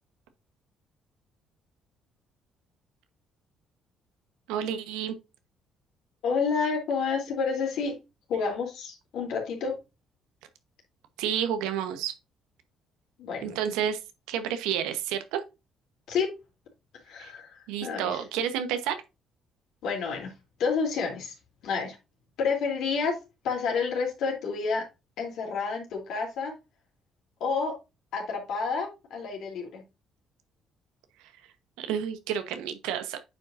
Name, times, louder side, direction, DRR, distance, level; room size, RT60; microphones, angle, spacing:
voice 1, 4.5-5.2 11.2-12.1 13.4-14.0 14.3-15.4 17.2-17.3 17.7-19.0 31.8-33.2, right 9 dB, 85° right, 1.0 m, -30 dB
voice 2, 6.2-8.0 8.3-9.8 13.2-13.6 16.1-16.3 17.1-18.2 19.8-20.3 20.6-21.3 21.6-22.0 22.4-23.1 23.4-24.8 25.2-26.5 27.4-27.7 28.1-29.8, left 5 dB, 70° left, 3.1 m, -29 dB
9.1 x 5.4 x 2.6 m
supercardioid pair, 60°, 0 cm